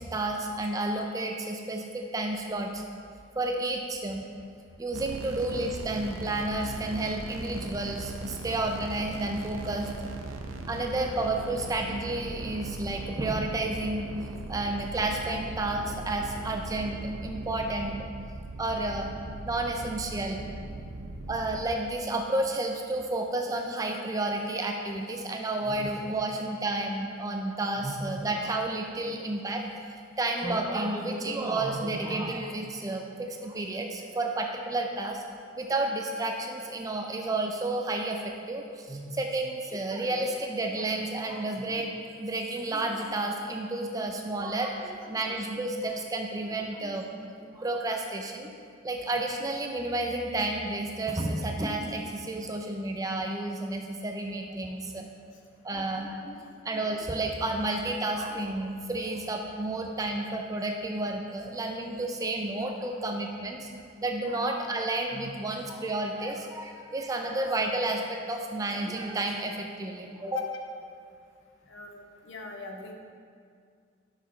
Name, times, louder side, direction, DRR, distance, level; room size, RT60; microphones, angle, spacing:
voice 1, 0.0-2.8 3.3-4.2 4.8-9.9 10.7-14.1 14.5-18.0 18.6-19.1 19.4-20.4 21.3-29.6 30.2-35.2 35.6-38.2 38.5-41.9 42.2-47.1 47.4-48.5 48.8-55.1 55.6-63.7 64.0-70.4, right 2 dB, 15° right, 2 dB, 0.4 m, -31 dB
sound 1, 4.9-21.7, right 2 dB, 85° right, 0.5 m, -39 dB
voice 2, 71.7-72.9, left 4 dB, 60° left, 2 dB, 0.7 m, -40 dB
6.8 x 5.7 x 3.1 m, 2.2 s
head